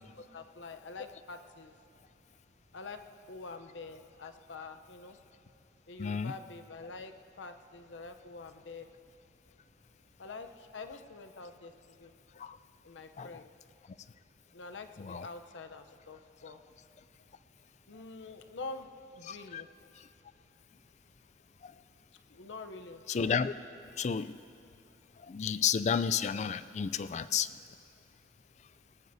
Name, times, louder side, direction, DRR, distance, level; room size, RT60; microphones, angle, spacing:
voice 1, 0.2-1.8 2.7-5.2 5.9-8.9 10.2-11.7 12.0-12.1 12.8-13.5 14.5-16.6 17.9-19.7 22.3-23.0, left 3 dB, 85° left, 7 dB, 0.7 m, -46 dB
voice 2, 6.0-6.3 12.4-12.6 13.2-13.4 15.0-15.3 19.3-19.6 20.0-20.1 21.6-21.7 23.1-23.5 24.0-24.4 25.2-27.5, left 7 dB, 40° left, 14 dB, 0.3 m, -32 dB
20.0 x 18.5 x 2.7 m, 2.7 s
head